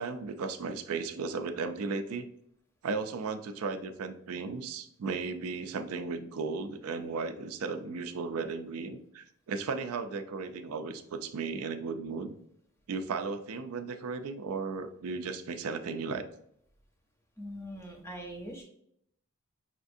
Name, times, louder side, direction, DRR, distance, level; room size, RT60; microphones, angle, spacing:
voice 1, 0.0-2.3 2.8-12.3 12.9-16.3, right 4 dB, 80° right, 8 dB, 0.4 m, -35 dB
voice 2, 17.4-18.6, equal, 10° left, 1 dB, 0.6 m, -42 dB
5.6 x 2.5 x 2.6 m, 0.71 s
head